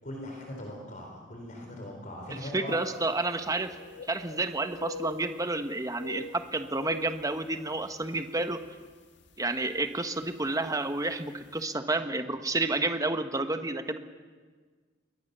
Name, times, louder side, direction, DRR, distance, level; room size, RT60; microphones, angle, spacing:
voice 1, 0.0-2.8, left 1 dB, 45° left, 1 dB, 4.2 m, -40 dB
voice 2, 2.3-3.7 4.1-8.6 9.4-14.0, right 2 dB, 20° right, 8 dB, 1.3 m, -30 dB
sound 1, 2.8-2.9 3.2-4.5 4.7-5.6 5.9-8.1 8.5-8.6 9.3-9.5 10.6-10.7 11.0-11.1, left 4 dB, 75° left, 1.8 m, -44 dB
28.5 x 22.0 x 6.8 m, 1.5 s
head